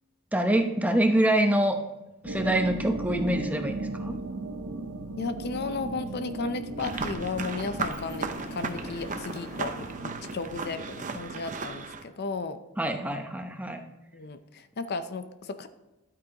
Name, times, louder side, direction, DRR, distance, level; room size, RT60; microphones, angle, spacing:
voice 1, 0.3-1.8 2.2-4.1 12.8-13.8, right 1 dB, 5° right, 5 dB, 0.8 m, -25 dB
sound 1, 2.2-11.5, right 2 dB, 85° right, 1.1 m, -37 dB
voice 2, 5.2-12.6 14.1-15.7, left 3 dB, 50° left, 10 dB, 0.6 m, -34 dB
Sliding door, 6.1-6.2 6.5-11.5, left 1 dB, 65° left, 1.9 m, -49 dB
sound 2, 6.8-12.0, right 4 dB, 35° right, 0.7 m, -36 dB
12.0 x 8.7 x 2.9 m, 1.0 s
head